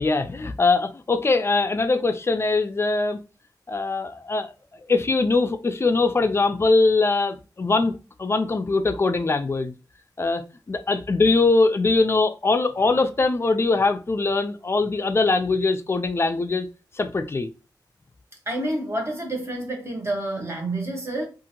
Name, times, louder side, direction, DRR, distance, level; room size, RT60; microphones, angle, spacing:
voice 1, 0.0-3.2 3.7-4.5 4.9-9.7 10.2-16.7 16.9-17.5, left 3 dB, 30° left, 0.3 m, -22 dB
voice 2, 18.5-21.3, right 1 dB, 30° right, 0.9 m, -28 dB
2.7 x 2.5 x 2.7 m
wide cardioid pair, 120°, 8 cm